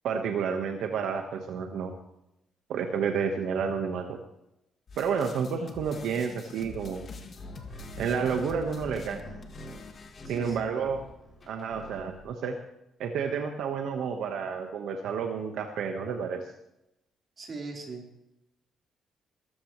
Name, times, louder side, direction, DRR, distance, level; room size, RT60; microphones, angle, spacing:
voice 1, 0.0-1.9 2.7-4.2 5.0-7.1 8.0-9.2 10.3-11.0 11.5-12.5 13.0-16.5, right 6 dB, 80° right, 4 dB, 1.4 m, -30 dB
sound 1, 4.9-10.5, left 4 dB, 45° left, 1.9 m, -46 dB
sound 2, 6.6-12.3, left 1 dB, 30° left, 6.9 m, -45 dB
voice 2, 10.3-10.9 17.4-18.0, right 3 dB, 40° right, 0 dB, 4.4 m, -40 dB
21.5 x 14.0 x 3.3 m, 0.85 s
cardioid pair, 105°, 0 cm